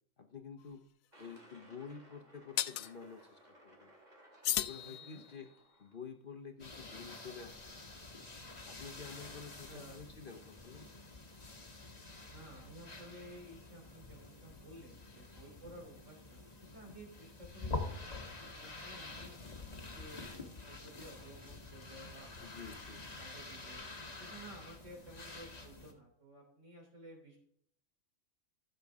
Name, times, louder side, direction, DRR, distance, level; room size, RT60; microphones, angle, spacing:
voice 1, 0.2-0.9 1.2-3.9 4.5-5.5 5.8-8.2 8.6-10.9 22.4-23.0, left 6 dB, 45° left, 6 dB, 0.9 m, -50 dB
sound 1, 0.6-0.7 2.6-2.9 4.4-5.5, left 13 dB, 90° left, 1.0 m, -36 dB
sound 2, 1.1-6.1, equal, 30° right, 2.7 m, -60 dB
voice 2, 4.8-5.2 9.7-10.0 12.3-19.3 19.8-22.8 23.2-23.8 24.2-27.4, right 1 dB, 65° right, 0 dB, 3.7 m, -54 dB
sound 3, 6.6-25.9, left 3 dB, 30° left, 1.6 m, -47 dB
14.5 x 6.8 x 3.6 m, 0.67 s
omnidirectional pair, 1.4 m